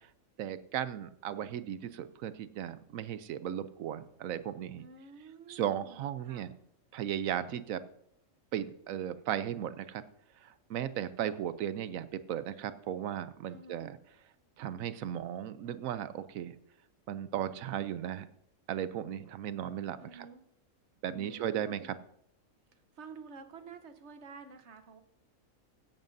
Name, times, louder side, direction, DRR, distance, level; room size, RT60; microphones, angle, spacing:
voice 1, 0.4-4.8 5.5-6.5 6.9-7.8 8.5-10.0 10.4-14.0 14.6-16.6 17.1-18.3 18.7-20.3 21.0-22.0, right 10 dB, 80° right, 13 dB, 1.0 m, -36 dB
voice 2, 4.8-6.5 13.5-13.9 20.0-20.4 21.1-22.0 23.0-25.0, right 4 dB, 55° right, 8 dB, 1.2 m, -50 dB
16.0 x 11.0 x 2.6 m, 0.70 s
omnidirectional pair, 1.4 m